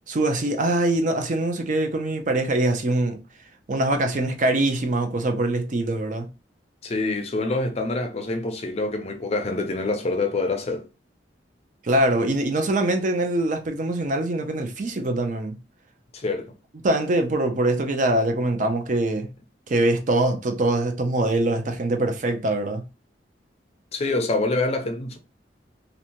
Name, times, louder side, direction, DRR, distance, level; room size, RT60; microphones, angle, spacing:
voice 1, 0.1-3.2 3.7-6.3 11.8-15.5 16.8-19.3 19.7-22.8, right 2 dB, 45° right, 0.5 m, -23 dB
voice 2, 6.8-10.9 16.1-16.5 23.9-25.2, left 2 dB, 35° left, 0.5 m, -26 dB
2.6 x 2.1 x 2.8 m
head